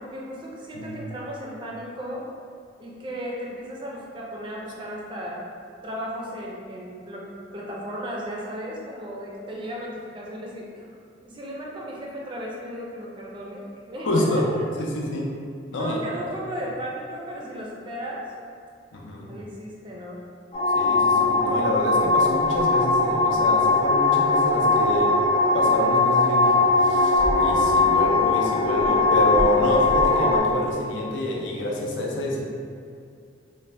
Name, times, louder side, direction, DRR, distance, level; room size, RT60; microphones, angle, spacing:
voice 1, 0.0-2.3 2.8-5.4 5.8-7.3 7.5-10.9 11.2-14.7 15.8-18.2 19.2-20.2, equal, 25° right, -4 dB, 0.4 m, -35 dB
voice 2, 14.0-14.4 14.8-15.3 15.7-16.0 18.9-19.3 20.7-25.1 25.5-32.4, left 1 dB, 75° left, -2 dB, 0.5 m, -27 dB
sound 1, 20.5-30.4, left 3 dB, 30° left, 0.5 m, -20 dB
2.5 x 2.1 x 3.2 m, 2.4 s
head